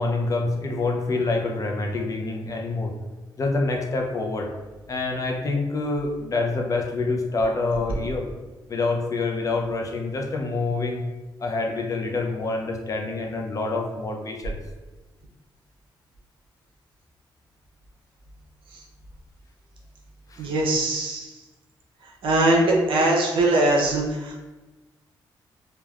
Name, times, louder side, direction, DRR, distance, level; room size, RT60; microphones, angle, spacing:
voice 1, 0.0-2.9 3.4-4.5 4.9-8.3 8.7-11.0 11.4-14.6 20.3-20.5, left 3 dB, 40° left, 2 dB, 0.5 m, -26 dB
voice 2, 20.4-21.3 22.2-24.4, right 2 dB, 85° right, -1 dB, 0.6 m, -21 dB
3.3 x 2.2 x 2.3 m, 1.2 s
cardioid pair, 90°, 9 cm